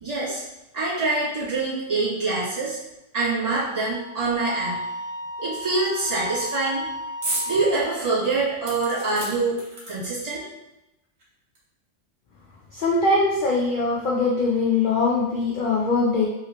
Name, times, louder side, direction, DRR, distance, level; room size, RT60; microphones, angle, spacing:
voice 1, 0.0-0.4 0.7-2.8 3.1-4.8 5.4-6.9 7.5-9.6 9.9-10.4, right 3 dB, 30° right, -11 dB, 1.5 m, -25 dB
Wind instrument woodwind instrument, 3.4-7.7, left 1 dB, 10° right, 0.5 m, -34 dB
sound 1, 7.2-7.5 7.9-8.0 8.6-10.3 11.2-11.3 11.6-11.7, right 2 dB, 55° right, 1.1 m, -32 dB
voice 2, 12.7-16.3, left 3 dB, 65° left, -3 dB, 0.5 m, -22 dB
2.9 x 2.9 x 2.8 m, 0.93 s
omnidirectional pair, 1.3 m